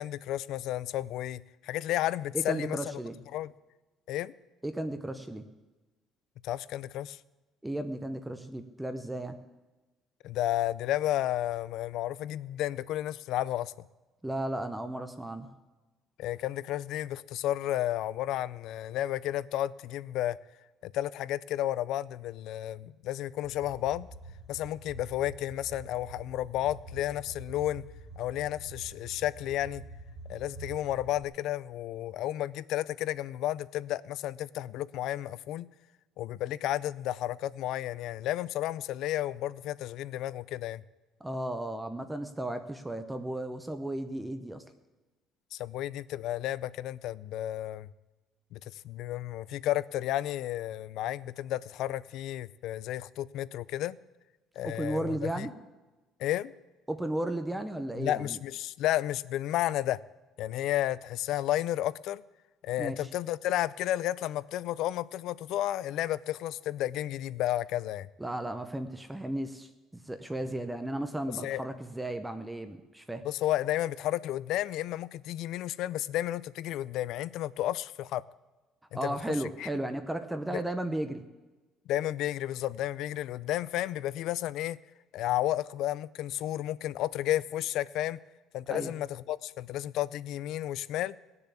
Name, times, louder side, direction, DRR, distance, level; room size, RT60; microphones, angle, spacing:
voice 1, 0.0-2.8 3.3-3.5 4.1-4.3 6.4-7.2 10.2-13.7 16.2-20.4 20.8-24.1 24.5-27.8 28.2-29.8 30.3-35.7 36.2-40.8 45.5-47.9 48.5-54.0 54.6-55.5 56.2-56.5 58.0-60.0 60.4-62.2 62.6-68.1 71.3-71.6 73.2-78.2 78.9-79.2 79.6-79.7 80.5-80.6 81.9-84.8 85.1-88.2 88.5-91.2, left 13 dB, 65° left, 0.4 m, -32 dB
voice 2, 2.3-3.2 4.6-5.4 7.6-9.4 14.2-15.5 41.2-44.6 54.6-55.5 56.9-58.4 62.8-63.1 68.2-73.2 78.9-81.2 88.7-88.9, right 1 dB, 5° right, 0.7 m, -34 dB
sound 1, 23.4-31.2, right 2 dB, 20° right, 2.5 m, -47 dB
17.5 x 6.8 x 8.4 m
cardioid pair, 155°, 0 cm